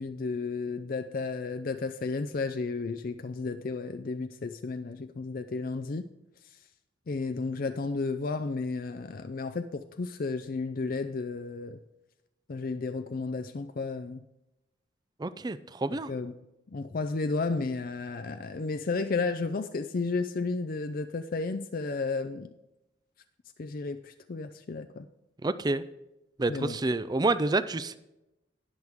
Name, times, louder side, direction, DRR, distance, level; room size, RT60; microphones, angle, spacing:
voice 1, 0.0-6.1 7.1-11.8 12.5-14.2 16.1-16.3 16.7-22.5 23.6-25.1 26.5-26.8, left 3 dB, 50° left, 9 dB, 0.4 m, -33 dB
voice 2, 15.2-16.1 25.4-25.8 26.4-28.0, right 2 dB, 20° right, 14 dB, 0.4 m, -28 dB
19.0 x 6.4 x 3.6 m, 0.92 s
head